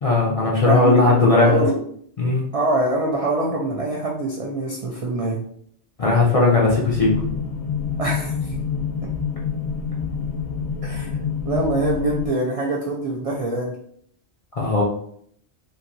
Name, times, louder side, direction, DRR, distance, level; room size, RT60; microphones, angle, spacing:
voice 1, 0.0-1.6 2.2-2.4 6.0-7.2 14.6-14.8, left 3 dB, 50° left, -4 dB, 0.4 m, -17 dB
voice 2, 0.7-1.8 2.5-5.4 8.0-8.5 10.8-11.1 11.4-13.7, right 2 dB, 60° right, -2 dB, 0.3 m, -24 dB
sound 1, 6.8-12.3, left 6 dB, 75° left, 0.9 m, -27 dB
2.9 x 2.6 x 2.5 m, 0.65 s
omnidirectional pair, 1.2 m